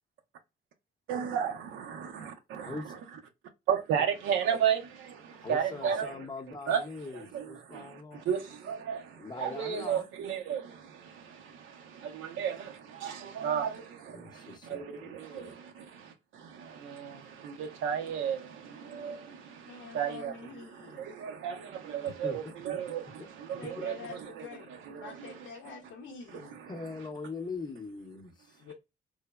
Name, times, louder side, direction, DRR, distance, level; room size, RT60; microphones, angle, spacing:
voice 1, 1.1-3.0 3.7-25.5 26.3-26.9, right 8 dB, 80° right, 0.5 m, -34 dB
voice 2, 2.6-3.0 5.4-8.3 9.2-10.1 14.1-15.5 22.0-22.4 23.8-23.9 26.7-28.6, left 3 dB, 20° left, 0.6 m, -42 dB
voice 3, 19.7-21.1 23.6-24.7 25.0-26.6 28.6-28.7, left 5 dB, 85° left, 0.6 m, -46 dB
3.2 x 2.0 x 2.2 m
cardioid pair, 90°, 20 cm